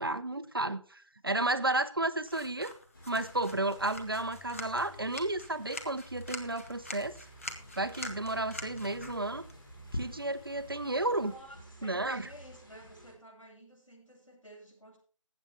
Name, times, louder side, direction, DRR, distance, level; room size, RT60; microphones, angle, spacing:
voice 1, 0.0-2.7 3.1-7.2 7.8-9.5 9.9-11.3 11.8-12.3, right 2 dB, 45° right, 0.7 m, -32 dB
sound 1, 2.2-11.3, left 1 dB, 25° left, 1.1 m, -47 dB
sound 2, 2.9-13.1, equal, 45° left, 4.8 m, -48 dB
voice 2, 11.2-15.0, equal, 80° left, 7.7 m, -52 dB
19.5 x 7.9 x 3.6 m
figure-of-eight pair, 165°, 17 cm